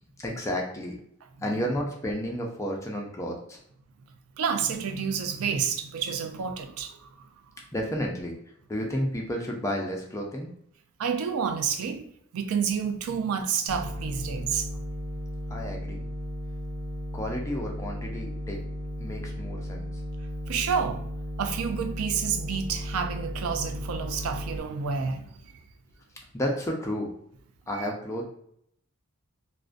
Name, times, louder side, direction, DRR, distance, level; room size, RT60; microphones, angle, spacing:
voice 1, 0.2-1.0 1.4-3.6 7.7-8.4 8.7-10.5 15.5-16.1 17.1-18.6 19.0-19.9 26.3-27.1 27.7-28.2, equal, 15° left, 0.4 m, -31 dB
voice 2, 4.4-7.3 11.0-12.0 12.3-14.7 20.5-21.1 21.4-25.4, right 6 dB, 90° right, 0.3 m, -29 dB
sound 1, 13.7-24.6, equal, 65° right, 0.7 m, -35 dB
2.4 x 2.1 x 2.4 m
head